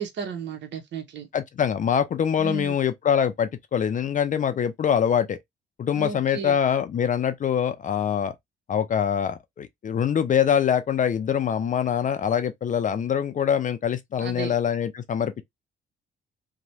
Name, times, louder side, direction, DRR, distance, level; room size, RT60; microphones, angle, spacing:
voice 1, 0.0-1.3 2.4-2.7 5.9-6.5 14.2-14.5, right 6 dB, 65° right, 0.9 m, -33 dB
voice 2, 1.3-5.4 5.8-8.3 8.7-15.4, left 8 dB, 40° left, 0.4 m, -24 dB
3.0 x 2.2 x 2.6 m
cardioid pair, 90°, 20 cm